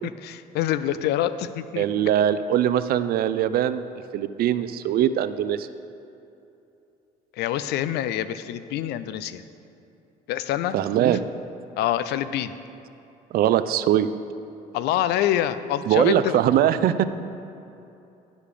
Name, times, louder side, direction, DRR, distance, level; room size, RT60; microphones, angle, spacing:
voice 1, 0.0-1.8 7.3-9.4 10.3-10.8 11.8-12.5 14.7-16.4, left 12 dB, 80° left, 13 dB, 0.4 m, -26 dB
voice 2, 1.8-3.8 4.1-5.7 10.7-11.2 13.3-14.1 15.9-17.0, right 11 dB, 65° right, 12 dB, 0.4 m, -21 dB
11.5 x 5.1 x 5.0 m, 2.8 s
cardioid pair, 110°, 17 cm